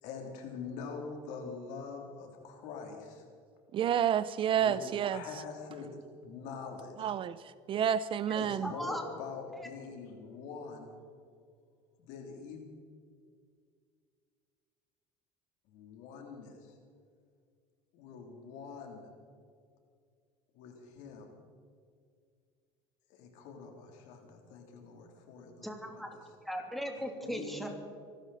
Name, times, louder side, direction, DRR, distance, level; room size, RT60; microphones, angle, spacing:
voice 1, 0.0-3.2 4.6-4.8 5.1-7.1 8.4-11.2 12.0-12.6 15.7-16.8 17.9-19.1 20.5-21.4 23.1-26.2 26.9-27.7, left 5 dB, 70° left, 3.3 m, -45 dB
voice 2, 3.7-5.2 7.0-8.7, right 9 dB, 40° right, 0.6 m, -30 dB
voice 3, 8.6-9.0 25.6-26.1 26.4-27.7, equal, ahead, 3.0 m, -37 dB
25.0 x 13.0 x 4.2 m
supercardioid pair, 100°, 13 cm